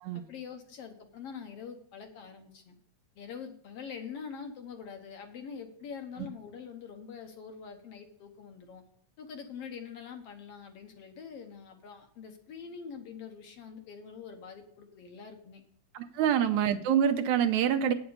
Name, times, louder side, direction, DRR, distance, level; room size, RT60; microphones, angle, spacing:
voice 1, 0.1-2.8 3.2-8.8 9.2-15.6 16.2-16.3, left 6 dB, 60° left, 5 dB, 1.9 m, -44 dB
voice 2, 15.9-17.9, right 9 dB, 80° right, 8 dB, 2.2 m, -26 dB
8.8 x 7.1 x 6.7 m, 0.63 s
omnidirectional pair, 3.3 m